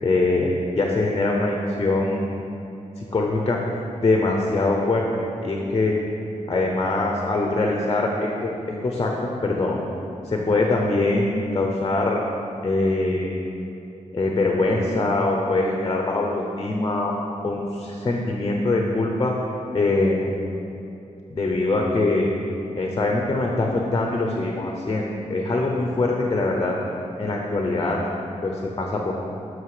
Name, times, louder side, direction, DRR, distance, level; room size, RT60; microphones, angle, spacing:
voice 1, 0.0-0.5 0.7-2.2 3.0-3.6 4.0-5.0 5.4-5.9 6.5-8.5 8.8-9.1 9.4-9.8 10.3-12.2 12.6-13.3 14.1-17.1 17.4-19.3 19.7-20.2 21.3-22.3 22.8-26.7 27.2-28.0 28.4-29.1, left 2 dB, 35° left, 0 dB, 0.8 m, -23 dB
11.0 x 6.3 x 4.9 m, 2.8 s
wide cardioid pair, 175°, 13 cm